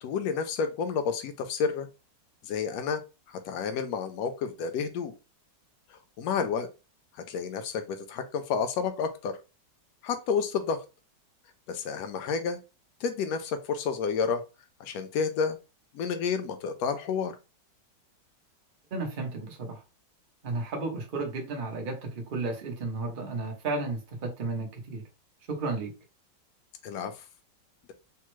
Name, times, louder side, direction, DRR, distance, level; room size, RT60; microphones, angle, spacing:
voice 1, 0.0-1.9 2.4-3.0 3.4-5.1 6.2-6.7 7.3-9.4 10.0-10.8 11.7-12.6 13.0-14.4 14.8-15.6 15.9-17.3 26.8-27.1, left 6 dB, 70° left, 0.9 m, -30 dB
voice 2, 18.9-19.8 20.4-25.0 25.5-25.9, right 3 dB, 80° right, 0.4 m, -33 dB
3.4 x 2.0 x 3.0 m
omnidirectional pair, 1.9 m